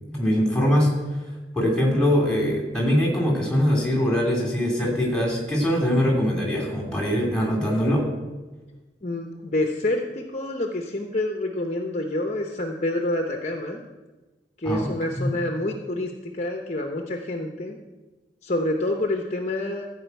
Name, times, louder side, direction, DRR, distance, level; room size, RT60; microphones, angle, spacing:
voice 1, 0.1-0.9 1.5-8.0 14.6-15.4, equal, 5° left, -2 dB, 2.9 m, -22 dB
voice 2, 9.0-13.8 14.6-17.8 18.4-19.9, left 1 dB, 40° left, 3 dB, 0.9 m, -27 dB
13.5 x 5.1 x 8.2 m, 1.2 s
head